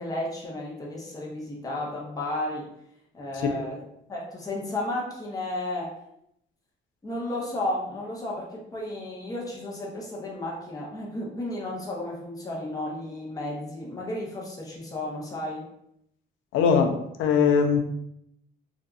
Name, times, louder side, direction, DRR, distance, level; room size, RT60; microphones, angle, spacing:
voice 1, 0.0-2.7 3.1-3.8 4.1-5.9 7.0-15.6, left 1 dB, 20° left, -4 dB, 0.7 m, -33 dB
voice 2, 16.5-17.8, left 6 dB, 85° left, 5 dB, 0.4 m, -21 dB
2.6 x 2.3 x 2.3 m, 0.76 s
cardioid pair, 90°, 20 cm